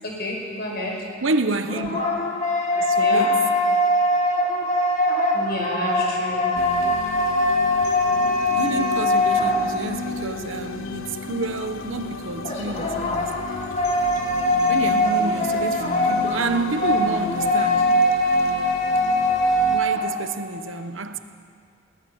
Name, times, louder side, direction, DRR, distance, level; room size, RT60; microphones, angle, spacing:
voice 1, 0.0-0.9 2.9-3.3 5.3-6.6, left 1 dB, 50° left, 5.8 m, -30 dB
voice 2, 1.2-2.0 2.7-3.4 8.5-13.4 14.7-17.9 19.7-21.2, right 3 dB, 70° right, 1.1 m, -29 dB
sound 1, 1.4-10.1 12.4-20.2, left 1 dB, 35° left, 2.2 m, -22 dB
sound 2, 6.5-19.8, left 4 dB, 75° left, 0.9 m, -34 dB
21.5 x 18.5 x 7.2 m
head